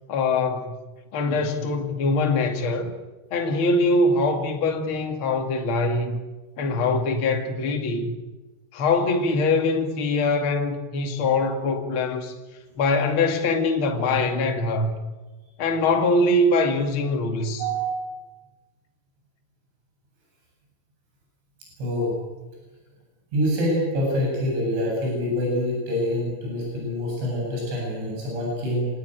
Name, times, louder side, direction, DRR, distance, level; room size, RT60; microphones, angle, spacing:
voice 1, 0.1-0.7 1.1-2.9 3.3-6.2 6.6-8.1 8.7-12.3 12.8-14.9 15.6-17.6, left 2 dB, 40° left, 2.1 m, -23 dB
voice 2, 17.6-18.2 21.8-22.1 23.3-28.9, equal, 65° right, 10.0 m, -26 dB
27.0 x 18.5 x 9.3 m
omnidirectional pair, 5.6 m